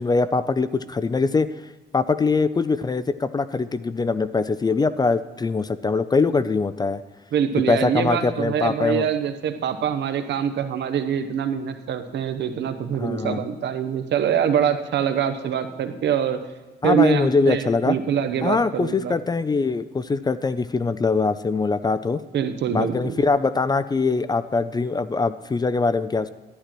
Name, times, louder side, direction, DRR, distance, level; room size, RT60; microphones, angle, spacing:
voice 1, 0.0-1.5 1.9-7.0 7.7-9.1 13.0-13.4 16.8-18.0 18.4-22.2 22.7-26.3, left 4 dB, 25° left, 14 dB, 0.3 m, -22 dB
voice 2, 7.3-16.4 16.8-19.1 22.3-23.2, right 8 dB, 75° right, 9 dB, 0.8 m, -24 dB
11.5 x 11.5 x 3.0 m, 1.3 s
cardioid pair, 110°, 18 cm